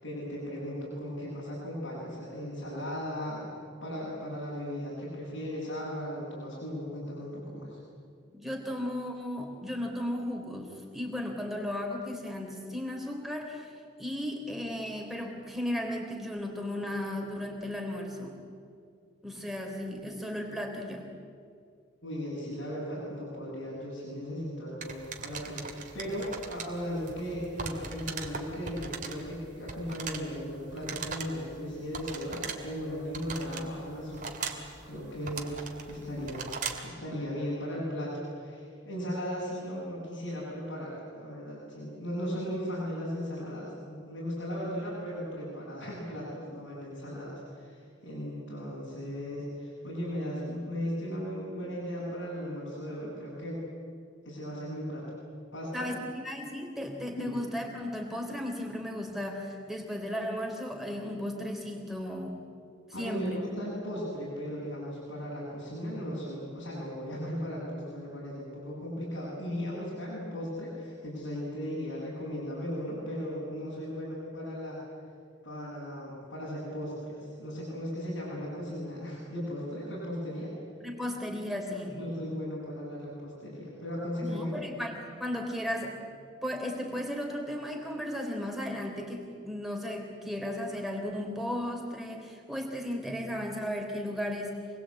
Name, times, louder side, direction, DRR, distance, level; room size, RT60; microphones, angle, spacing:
voice 1, 0.0-3.5 3.8-7.8 22.0-35.5 35.9-36.5 36.8-53.7 54.2-55.1 55.5-55.9 57.2-57.3 62.9-74.8 75.4-80.6 81.9-84.5, equal, 90° left, -6 dB, 7.8 m, -37 dB
voice 2, 8.3-13.7 14.0-18.4 19.2-21.1 55.7-62.3 63.0-63.4 80.8-82.0 84.2-94.6, left 1 dB, ahead, 1 dB, 3.6 m, -35 dB
sound 1, 24.8-36.9, right 5 dB, 40° right, 2.5 m, -41 dB
27.0 x 21.0 x 8.6 m, 2.4 s
head